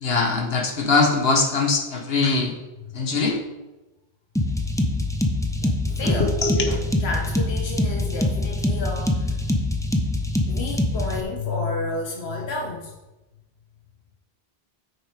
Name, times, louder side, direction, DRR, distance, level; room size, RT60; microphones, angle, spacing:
voice 1, 0.0-2.5 2.9-3.4 6.0-6.8, left 3 dB, 75° left, 2 dB, 1.5 m, -22 dB
sound 1, 4.4-11.2, left 1 dB, 5° left, 0.7 m, -24 dB
voice 2, 5.6-6.3 7.0-9.4 10.5-12.9, left 2 dB, 90° left, 1 dB, 1.3 m, -31 dB
9.2 x 6.1 x 5.0 m, 1.1 s
omnidirectional pair, 1.0 m